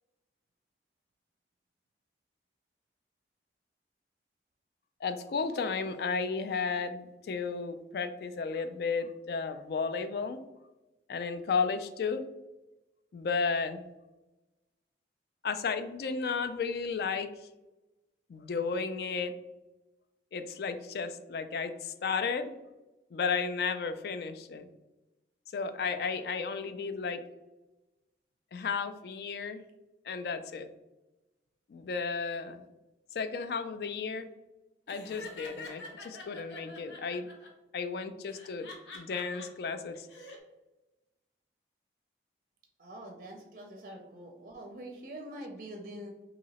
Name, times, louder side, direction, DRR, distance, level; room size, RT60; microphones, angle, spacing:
voice 1, 5.0-10.4 11.1-12.2 13.1-13.8 15.4-17.3 18.3-19.3 20.3-22.5 23.1-24.7 25.5-27.2 28.5-29.6 30.0-30.7 31.7-32.6 33.1-34.3 34.9-37.3 37.7-38.7 38.9-40.1, left 5 dB, 60° left, 10 dB, 0.3 m, -33 dB
Laughter, 34.9-37.5 38.3-39.5 39.9-40.4, left 3 dB, 85° left, 0.8 m, -46 dB
voice 2, 42.8-46.1, right 1 dB, 45° right, 2 dB, 0.5 m, -44 dB
2.9 x 2.8 x 4.0 m, 1.0 s
head